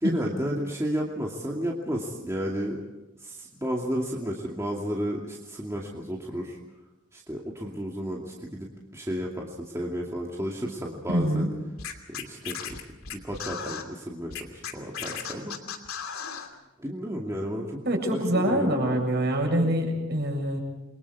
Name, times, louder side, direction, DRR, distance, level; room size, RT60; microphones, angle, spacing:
voice 1, 0.0-2.8 3.2-6.6 7.1-11.5 12.1-12.8 13.1-15.6 16.8-17.8 18.1-18.7, equal, 15° right, -2 dB, 2.5 m, -32 dB
voice 2, 11.1-11.5 17.9-20.6, right 1 dB, 50° right, 1 dB, 7.3 m, -25 dB
Scratching (performance technique), 11.8-13.8 14.3-16.5, left 7 dB, 85° left, 2.8 m, -35 dB
29.0 x 23.5 x 4.8 m, 1.0 s
head